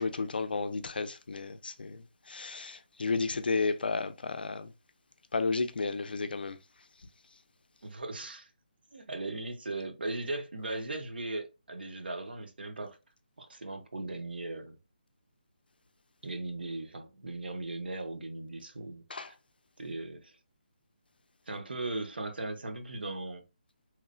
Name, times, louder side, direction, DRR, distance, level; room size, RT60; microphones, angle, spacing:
voice 1, 0.0-2.0 2.3-4.7 5.3-6.6 19.1-19.3, left 4 dB, 75° left, 0.3 m, -32 dB
voice 2, 7.8-8.5 8.9-13.0 13.4-14.8 16.2-19.4 19.8-20.4 21.5-23.4, right 2 dB, 90° right, 0.6 m, -38 dB
3.0 x 2.0 x 2.4 m
hypercardioid pair, 175°, 5 cm